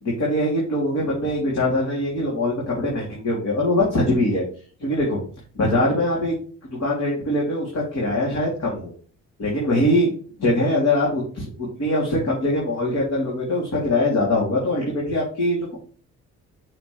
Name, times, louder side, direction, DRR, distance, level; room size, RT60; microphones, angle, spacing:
voice 1, 0.0-4.5 4.8-5.2 5.5-6.3 6.6-8.9 9.4-10.1 10.4-15.8, left 1 dB, 60° left, -4 dB, 2.9 m, -22 dB
6.1 x 5.9 x 3.2 m, 0.43 s
cardioid pair, 90°, 30 cm